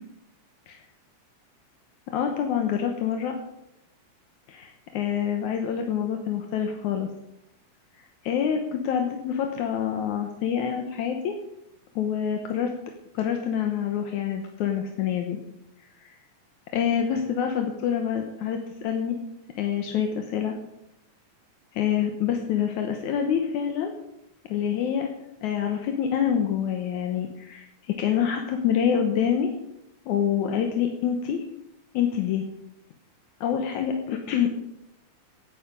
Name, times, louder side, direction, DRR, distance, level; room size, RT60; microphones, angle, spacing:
voice 1, 2.1-3.4 4.5-7.1 8.2-11.3 12.0-12.7 13.1-15.4 16.0-16.1 16.7-19.2 19.6-20.5 21.7-23.9 24.5-25.1 25.4-29.5 30.1-31.4 31.9-32.4 33.4-34.5, left 8 dB, 75° left, 4 dB, 2.5 m, -26 dB
16.0 x 9.4 x 5.2 m, 0.86 s
omnidirectional pair, 3.5 m